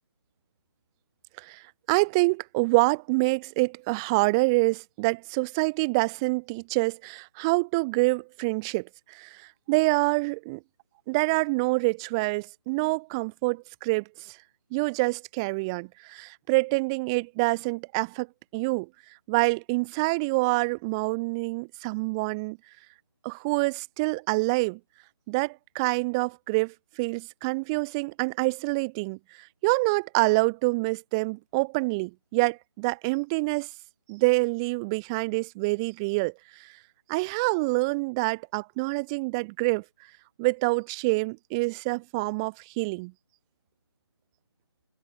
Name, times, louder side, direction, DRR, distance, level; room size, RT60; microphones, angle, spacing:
voice 1, 1.4-10.6 11.1-14.4 14.7-18.3 18.5-18.9 19.3-22.6 23.2-24.8 25.3-33.7 34.1-36.7 37.1-39.8 40.4-43.1, right 27 dB, 10° right, 4.4 m, -26 dB
figure-of-eight pair, 175°, 14 cm